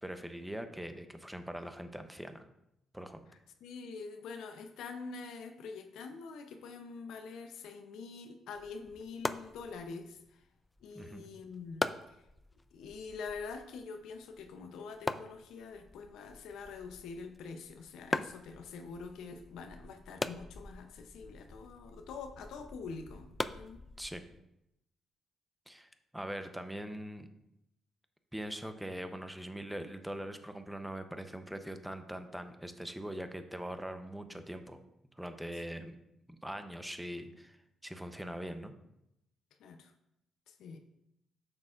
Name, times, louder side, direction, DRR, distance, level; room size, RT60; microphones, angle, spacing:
voice 1, 0.0-2.5 2.9-3.2 10.9-11.2 24.0-24.2 25.7-27.3 28.3-34.8 35.2-36.0 36.3-38.7, right 1 dB, 5° right, 8 dB, 0.7 m, -42 dB
voice 2, 3.3-10.4 10.8-12.3 12.7-23.8 39.6-39.9 40.5-40.8, left 4 dB, 80° left, 6 dB, 0.6 m, -45 dB
sound 1, 8.5-24.4, left 2 dB, 20° left, 0.3 m, -42 dB
8.5 x 6.6 x 2.5 m, 0.84 s
cardioid pair, 90°, 0 cm